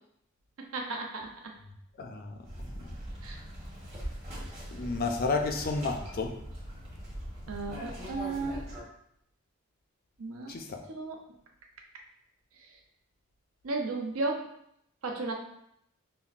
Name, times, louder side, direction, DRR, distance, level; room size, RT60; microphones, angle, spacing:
voice 1, 0.6-1.5 3.2-3.4 7.5-8.7 10.2-10.5 10.9-11.2 13.6-14.5 15.0-15.3, right 3 dB, 80° right, 1 dB, 0.6 m, -34 dB
voice 2, 2.0-2.4 2.7-2.9 4.7-6.4 10.5-10.8, left 3 dB, 45° left, 4 dB, 0.4 m, -31 dB
sound 1, 2.4-8.8, equal, 30° right, 1.0 m, -41 dB
5.4 x 2.1 x 2.4 m, 0.73 s
head